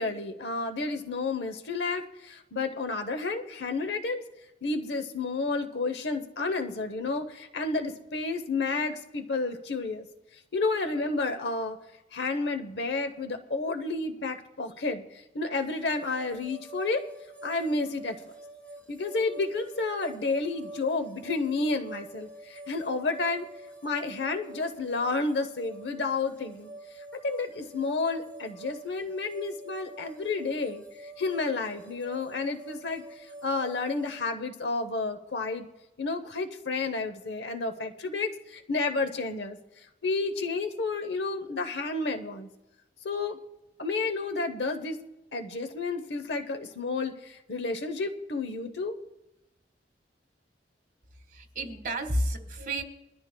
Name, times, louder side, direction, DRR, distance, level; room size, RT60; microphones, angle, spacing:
voice 1, 0.0-4.2 4.6-10.0 10.5-11.8 12.1-17.1 17.4-18.3 18.9-23.5 23.8-26.7 27.2-35.7 36.0-42.5 43.0-43.4 43.8-45.0 45.3-48.9, left 3 dB, 70° left, 7 dB, 0.9 m, -31 dB
sound 1, 15.5-34.1, right 2 dB, 10° left, 3.4 m, -46 dB
voice 2, 51.2-52.8, right 1 dB, 50° right, 5 dB, 1.7 m, -31 dB
22.5 x 13.5 x 2.3 m, 0.98 s
head